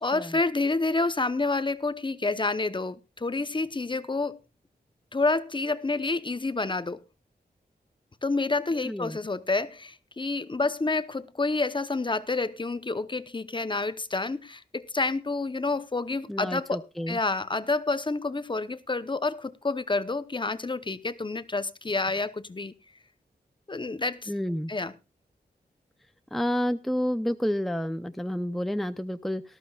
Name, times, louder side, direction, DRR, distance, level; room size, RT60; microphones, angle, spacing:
voice 1, 0.0-4.4 5.1-7.0 8.2-22.7 23.7-24.3 24.7-24.9, left 3 dB, 30° left, 0.8 m, -29 dB
voice 2, 8.8-9.2 16.3-17.2 24.3-24.7 26.3-29.4, equal, ahead, 0.6 m, -29 dB
19.0 x 13.5 x 2.4 m
wide cardioid pair, 125°, 17 cm